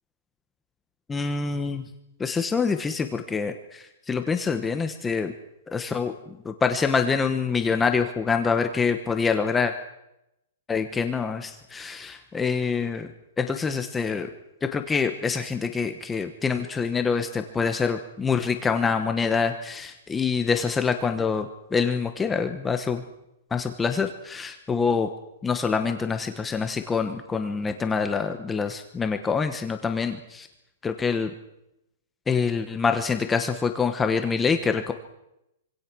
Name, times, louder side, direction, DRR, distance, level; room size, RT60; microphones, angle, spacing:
voice 1, 1.1-1.8 2.2-5.3 5.7-9.7 10.7-13.1 13.4-14.3 14.6-23.0 23.5-25.1 25.4-30.5 30.8-31.3 32.3-34.9, left 5 dB, 10° left, 7 dB, 1.1 m, -26 dB
26.0 x 25.5 x 6.2 m, 0.87 s
hypercardioid pair, 170°, 0 cm